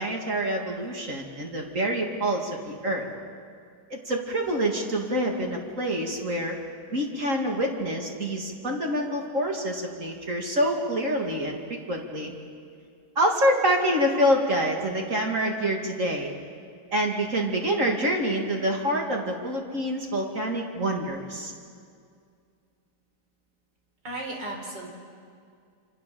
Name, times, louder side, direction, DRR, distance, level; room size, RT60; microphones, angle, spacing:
voice 1, 0.0-3.1 3.9-6.6 6.9-12.3 13.2-16.3 16.9-21.5, equal, 45° right, 1 dB, 2.8 m, -26 dB
voice 2, 24.0-24.9, right 1 dB, 85° right, 1 dB, 4.6 m, -35 dB
27.5 x 26.0 x 7.0 m, 2.2 s
omnidirectional pair, 1.9 m